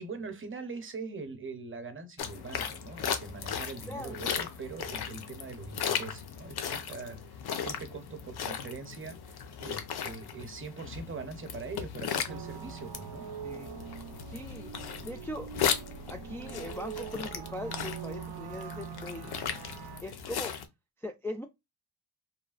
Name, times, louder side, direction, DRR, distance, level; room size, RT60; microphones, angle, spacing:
voice 1, 0.0-13.3, right 4 dB, 35° right, 0.7 m, -42 dB
sound 1, 2.2-20.7, left 8 dB, 75° left, 0.7 m, -37 dB
voice 2, 3.8-4.2 13.4-13.7 14.3-14.7 15.0-15.5 16.1-19.3 20.0-20.6 21.0-21.5, left 1 dB, 5° left, 0.3 m, -40 dB
sound 2, 12.3-20.0, right 9 dB, 85° right, 0.6 m, -43 dB
3.1 x 2.2 x 2.4 m
cardioid pair, 105°, 38 cm